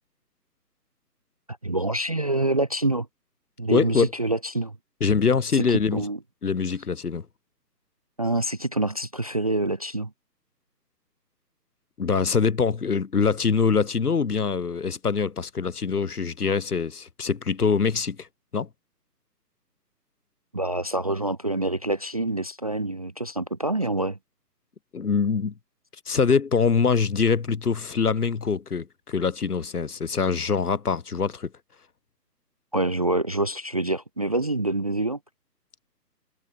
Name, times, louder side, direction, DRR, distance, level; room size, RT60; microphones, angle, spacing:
voice 1, 1.5-3.1 3.6-4.8 5.5-6.2 8.2-10.1 20.5-24.2 32.7-35.2, right 2 dB, 25° right, 0.6 m, -26 dB
voice 2, 3.7-4.1 5.0-6.0 6.4-7.3 12.0-18.3 18.5-18.7 24.9-25.5 26.1-31.5, left 5 dB, 60° left, 5.9 m, -24 dB
figure-of-eight pair, 145°, 50 cm